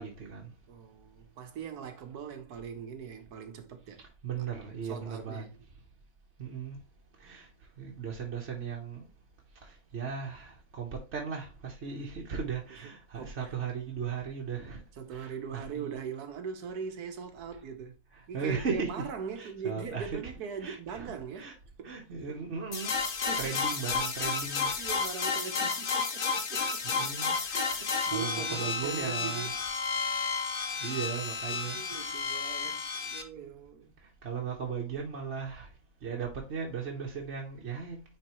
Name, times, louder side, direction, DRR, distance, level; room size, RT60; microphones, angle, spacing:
voice 1, 0.0-0.5 4.0-5.5 6.4-6.8 7.2-7.5 7.8-9.1 9.6-14.8 15.1-16.0 18.2-19.1 19.4-20.3 20.6-21.5 21.8-25.0 25.6-25.7 26.8-27.4 27.7-29.5 30.8-32.1 32.6-32.8 34.2-35.7 36.0-38.0, right 6 dB, 50° right, 1.3 m, -37 dB
voice 2, 0.7-4.0 4.8-5.6 12.8-12.9 13.2-13.5 15.0-17.9 18.3-21.5 21.8-22.0 22.3-22.4 23.2-23.6 24.8-26.8 27.4-29.5 31.5-34.0, right 6 dB, 80° right, 1.5 m, -41 dB
sound 1, 22.7-33.2, left 5 dB, 45° left, 0.8 m, -32 dB
9.2 x 3.9 x 3.1 m
omnidirectional pair, 1.6 m